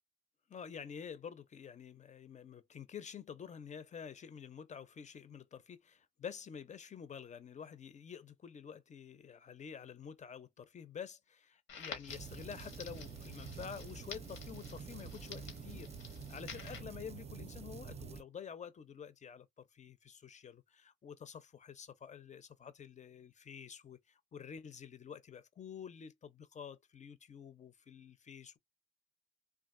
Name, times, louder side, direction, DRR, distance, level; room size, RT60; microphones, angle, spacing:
voice 1, 0.5-28.6, left 7 dB, 35° left, 0.7 m, -49 dB
Crackle, 11.7-16.8, left 6 dB, 90° left, 1.3 m, -51 dB
sound 1, 12.1-18.2, right 6 dB, 30° right, 0.5 m, -48 dB
3.6 x 2.5 x 2.5 m
cardioid pair, 90°, 20 cm